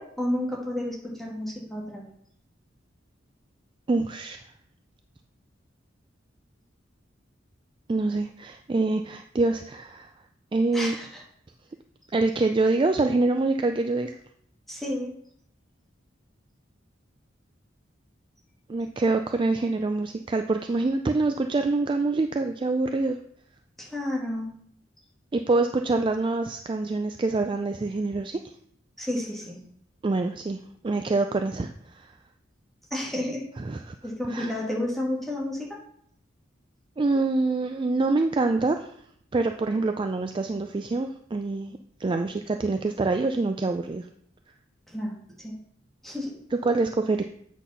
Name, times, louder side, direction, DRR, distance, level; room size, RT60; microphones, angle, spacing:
voice 1, 0.0-2.1 10.7-11.2 14.7-15.1 23.8-24.5 29.0-29.6 32.9-33.4 34.0-35.8 44.9-45.5 46.0-46.3, left 1 dB, ahead, -4 dB, 2.0 m, -31 dB
voice 2, 3.9-4.4 7.9-10.1 10.5-11.0 12.1-14.2 18.7-23.2 25.3-28.4 30.0-30.6 30.8-32.1 33.6-34.0 34.3-34.6 37.0-38.9 39.3-44.1 46.5-47.2, right 3 dB, 25° right, 6 dB, 0.3 m, -25 dB
8.2 x 4.0 x 5.6 m, 0.65 s
head